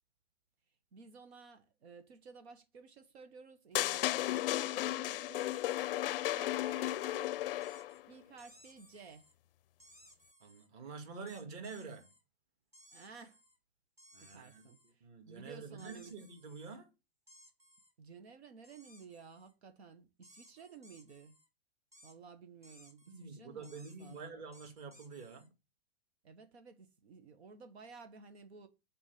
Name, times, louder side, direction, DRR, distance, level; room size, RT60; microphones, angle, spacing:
voice 1, 0.9-5.6 6.2-7.3 8.1-9.3 12.9-13.4 14.2-16.2 18.0-21.4 22.0-24.3 26.2-28.7, right 5 dB, 90° right, 1.4 m, -55 dB
sound 1, 3.7-8.0, left 14 dB, 60° left, 0.4 m, -34 dB
sound 2, 7.6-8.0 8.4-9.3 9.8-10.7 11.3-12.2 12.7-13.6 14.0-14.9 15.8-16.8 17.3-17.9 18.6-19.5 20.2-21.5 21.9-22.2 22.6-23.2 23.6-25.5, equal, 10° right, 1.2 m, -62 dB
voice 2, 10.4-12.1 14.1-14.7 15.0-16.9 23.1-25.5, right 4 dB, 40° right, 2.1 m, -47 dB
7.2 x 4.4 x 6.8 m
supercardioid pair, 165°, 31 cm